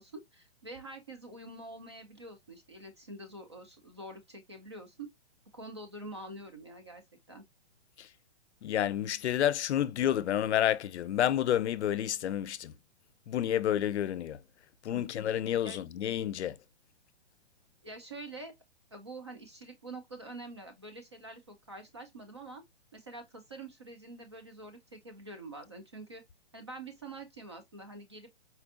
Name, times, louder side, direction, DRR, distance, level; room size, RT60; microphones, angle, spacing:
voice 1, 0.0-5.1 5.5-7.0 7.3-7.4 14.9-15.1 15.6-15.8 17.8-18.5 18.9-22.6 22.9-26.2 26.5-28.3, right 2 dB, 25° right, 0.4 m, -46 dB
voice 2, 8.6-12.7 13.3-14.4 14.8-16.6, left 11 dB, 90° left, 0.5 m, -29 dB
4.3 x 2.5 x 2.4 m
hypercardioid pair, 170°, 33 cm